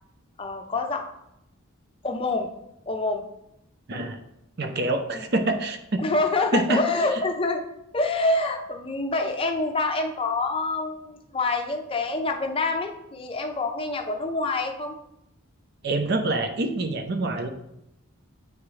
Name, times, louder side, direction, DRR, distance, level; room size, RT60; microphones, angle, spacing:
voice 1, 0.4-1.1 2.0-2.5 2.9-3.2 3.9-4.0 5.1-5.2 6.0-7.6 7.9-14.9, left 3 dB, 25° left, 4 dB, 0.5 m, -26 dB
voice 2, 3.9-4.2 4.6-6.0 6.5-6.8 15.8-17.5, right 2 dB, 50° right, 7 dB, 0.6 m, -26 dB
8.6 x 3.6 x 3.2 m, 0.82 s
head